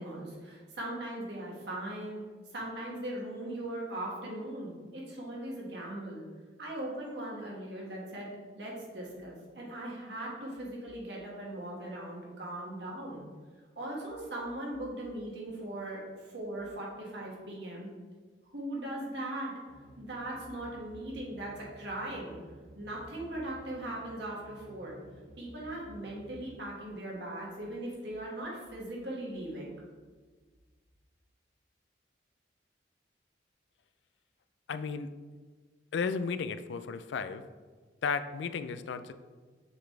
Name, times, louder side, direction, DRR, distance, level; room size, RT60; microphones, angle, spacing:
voice 1, 0.0-2.2 2.5-6.3 6.6-8.3 8.6-13.3 13.8-17.9 18.5-19.5 20.0-22.4 22.8-25.0 25.4-29.8, right 1 dB, 70° right, -4 dB, 1.7 m, -39 dB
sound 1, 19.7-26.5, equal, 35° right, 1.7 m, -54 dB
voice 2, 34.7-35.1 35.9-37.4 38.0-39.1, left 5 dB, 75° left, 11 dB, 0.3 m, -34 dB
7.2 x 4.0 x 3.2 m, 1.4 s
head